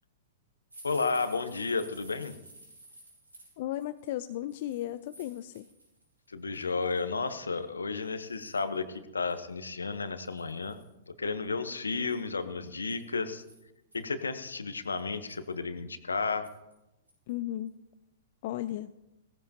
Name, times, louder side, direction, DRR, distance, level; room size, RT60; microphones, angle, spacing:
sound 1, 0.7-6.1 6.4-7.0 7.6-7.7 8.0-8.8 9.3-9.4 9.6-9.7 10.2-10.9 11.9-14.0 14.5-14.6 15.0-15.5 16.4-16.7 17.1-17.3 17.7-17.8, right 2 dB, 85° right, 6.5 m, -54 dB
voice 1, 0.8-2.3 6.3-10.8 11.1-13.4 13.9-16.5, left 4 dB, 80° left, 11 dB, 1.0 m, -32 dB
voice 2, 3.6-5.6 17.3-17.7 18.4-19.0, left 13 dB, 50° left, 12 dB, 0.4 m, -35 dB
17.5 x 15.5 x 2.9 m, 0.94 s
figure-of-eight pair, 105°, 0 cm